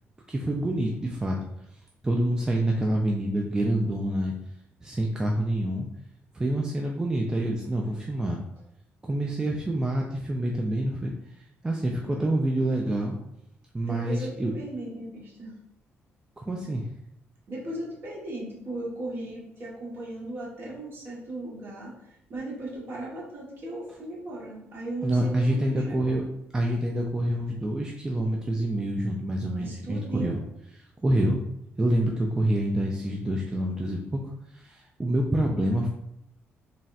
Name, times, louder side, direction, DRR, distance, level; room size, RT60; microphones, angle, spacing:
voice 1, 0.3-1.4 2.0-4.3 4.8-5.9 6.3-8.4 9.0-11.1 11.6-13.2 13.7-14.5 16.4-16.8 25.0-26.2 26.5-30.4 31.0-31.4 31.8-34.2 34.5-35.9, right 1 dB, 15° right, 0 dB, 0.3 m, -27 dB
voice 2, 13.8-15.5 17.5-21.9 22.3-26.2 29.6-30.4, right 1 dB, 45° right, -4 dB, 1.1 m, -37 dB
3.9 x 2.1 x 2.4 m, 0.78 s
cardioid pair, 115°, 5 cm